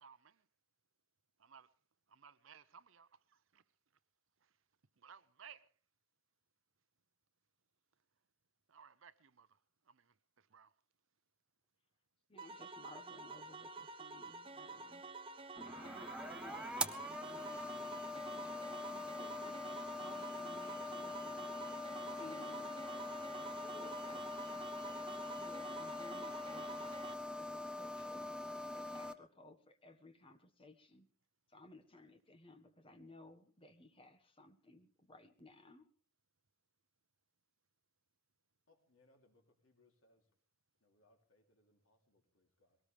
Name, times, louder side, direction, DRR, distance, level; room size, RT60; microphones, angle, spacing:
voice 1, 0.0-0.3 1.4-1.7 2.1-3.1 3.5-3.6 5.0-5.6 8.7-9.5 9.9-10.0 10.5-10.7, right 7 dB, 65° right, 0.7 m, -58 dB
voice 2, 12.3-21.6 22.2-22.7 23.6-27.0 27.4-28.3 28.7-31.1 31.5-35.9, left 2 dB, 25° left, 1.6 m, -59 dB
sound 1, 12.4-27.1, right 3 dB, 25° right, 1.0 m, -50 dB
sound 2, 15.6-29.1, left 2 dB, 5° right, 0.7 m, -44 dB
voice 3, 38.7-40.2 40.8-42.8, left 2 dB, 70° left, 3.3 m, -73 dB
21.5 x 18.0 x 3.4 m
head